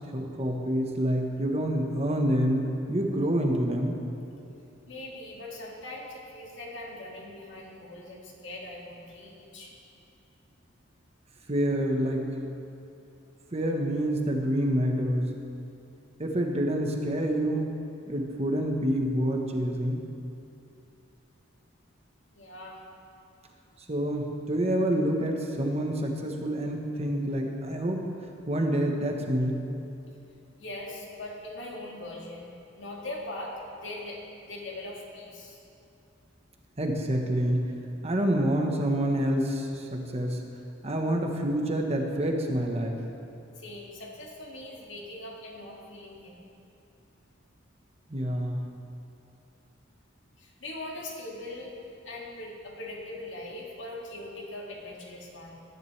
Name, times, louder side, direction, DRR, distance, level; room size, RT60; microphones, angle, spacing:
voice 1, 0.1-4.0 11.5-12.4 13.5-15.4 16.2-17.7 18.1-20.0 23.9-28.0 28.5-29.6 36.8-37.7 38.0-40.4 40.8-43.0 48.1-48.6, right 1 dB, 30° right, 1 dB, 1.2 m, -27 dB
voice 2, 4.9-9.7 22.3-22.8 30.6-32.5 32.7-35.6 43.6-46.5 50.4-51.7 52.0-55.6, left 1 dB, 65° left, -2 dB, 2.3 m, -41 dB
20.0 x 10.5 x 3.3 m, 2.7 s
head